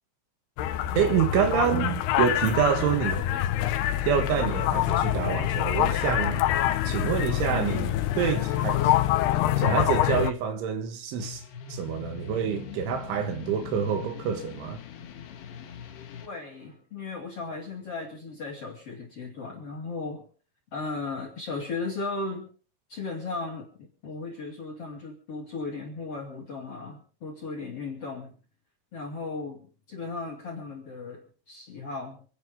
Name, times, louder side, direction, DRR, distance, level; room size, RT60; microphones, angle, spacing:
sound 1, 0.6-10.3, left 12 dB, 80° left, 2.3 m, -25 dB
voice 1, 1.0-3.3 4.1-6.5 6.9-8.9 9.6-11.4 11.7-14.8, right 8 dB, 75° right, 3.8 m, -27 dB
sound 2, 11.2-16.3, left 8 dB, 65° left, 3.4 m, -41 dB
voice 2, 16.2-20.3 20.7-22.5 22.9-28.4 28.9-32.2, left 3 dB, 40° left, 2.4 m, -36 dB
27.5 x 11.0 x 3.7 m
omnidirectional pair, 5.8 m